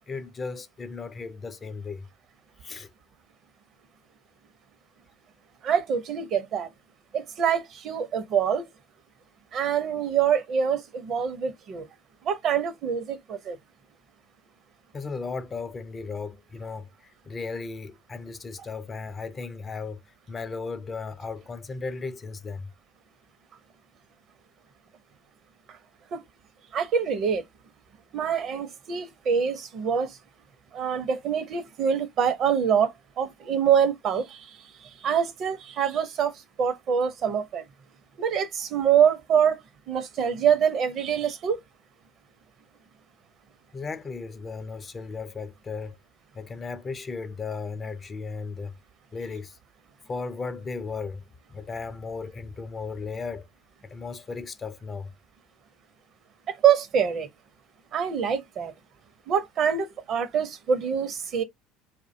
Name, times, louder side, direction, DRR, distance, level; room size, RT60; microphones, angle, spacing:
voice 1, 0.1-2.1 2.6-2.9 14.9-20.0 20.3-22.7 43.7-46.0 46.3-48.7 49.1-49.6 50.1-51.2 51.5-53.5 53.8-55.1, left 4 dB, 30° left, 0.4 m, -35 dB
voice 2, 5.6-6.7 7.1-8.6 9.5-11.9 12.2-13.6 26.1-26.2 26.7-27.4 28.1-30.1 30.7-34.5 35.0-36.3 36.6-37.6 38.2-39.6 39.9-41.6 56.6-57.3 57.9-58.7 59.3-61.4, right 8 dB, 50° right, 0.5 m, -25 dB
2.4 x 2.1 x 2.5 m
hypercardioid pair, 70°, 0 cm